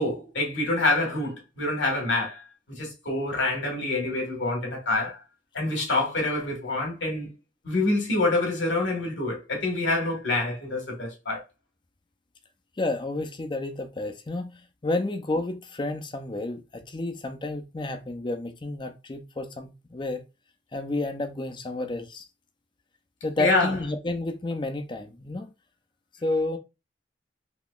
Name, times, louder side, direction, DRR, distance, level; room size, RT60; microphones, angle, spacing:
voice 1, 0.0-2.4 2.7-5.2 5.5-7.3 7.6-11.4 23.4-23.7, left 2 dB, 90° left, 1.5 m, -26 dB
voice 2, 12.8-20.2 20.7-22.3 23.2-25.5 26.2-26.6, left 2 dB, 25° left, 0.5 m, -31 dB
3.7 x 2.9 x 2.3 m
head